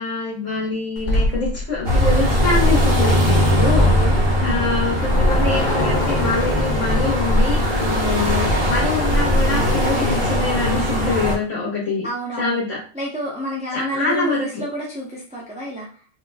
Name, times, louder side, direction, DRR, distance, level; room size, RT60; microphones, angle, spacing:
voice 1, 0.0-3.9 4.4-12.1 12.4-12.8 13.7-14.6, left 3 dB, 65° left, -7 dB, 1.4 m, -25 dB
sound 1, 1.0-8.5, left 1 dB, 40° left, 1.0 m, -26 dB
sound 2, 1.8-11.3, equal, 45° right, 1.5 m, -19 dB
voice 2, 4.0-4.6 12.0-12.6 12.9-15.9, equal, 10° right, -5 dB, 0.5 m, -29 dB
4.3 x 2.7 x 2.2 m, 0.40 s
omnidirectional pair, 1.4 m